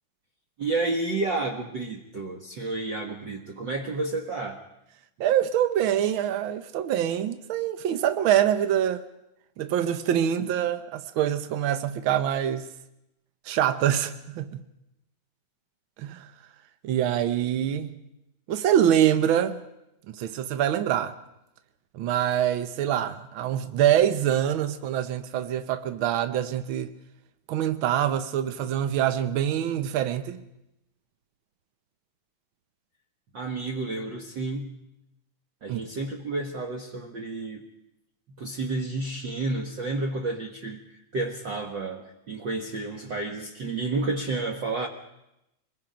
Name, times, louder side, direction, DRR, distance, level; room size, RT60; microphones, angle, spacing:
voice 1, 0.6-4.6 33.3-34.7 35.6-37.6 38.4-44.9, right 3 dB, 50° right, 1.5 m, -31 dB
voice 2, 5.2-9.0 9.6-12.7 13.4-14.6 16.0-16.3 16.8-18.0 18.5-19.6 20.1-21.2 21.9-26.9 27.5-30.4 35.7-35.8, right 10 dB, 80° right, 1.1 m, -25 dB
24.5 x 22.0 x 5.1 m
omnidirectional pair, 3.5 m